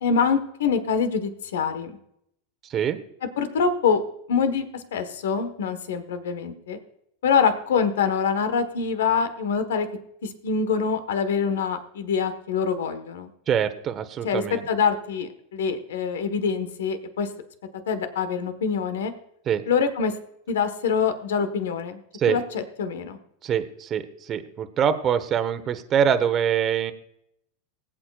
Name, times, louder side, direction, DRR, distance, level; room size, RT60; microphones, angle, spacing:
voice 1, 0.0-2.0 3.4-4.0 4.3-6.8 7.2-9.9 10.2-13.3 14.2-17.3 17.9-19.1 19.7-20.1 20.5-22.0 22.3-23.2, left 6 dB, 80° left, 10 dB, 1.2 m, -25 dB
voice 2, 2.6-3.0 13.5-14.7 19.5-19.6 22.2-22.4 23.4-26.9, right 8 dB, 35° right, 9 dB, 0.9 m, -24 dB
20.0 x 8.7 x 2.4 m, 0.75 s
hypercardioid pair, 105°, 0 cm